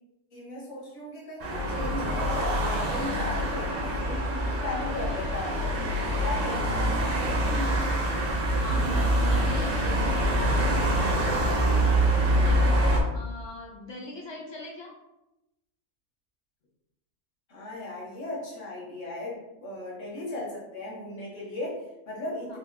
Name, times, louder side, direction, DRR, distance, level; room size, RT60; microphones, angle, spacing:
voice 1, 0.3-4.3 4.6-7.9 17.5-22.6, left 1 dB, 65° left, -4 dB, 1.5 m, -37 dB
sound 1, 1.4-13.0, right 1 dB, 50° right, 0.8 m, -25 dB
voice 2, 8.6-14.9 22.5-22.6, left 2 dB, 40° left, -1 dB, 0.4 m, -40 dB
4.2 x 2.6 x 2.6 m, 0.93 s
omnidirectional pair, 1.4 m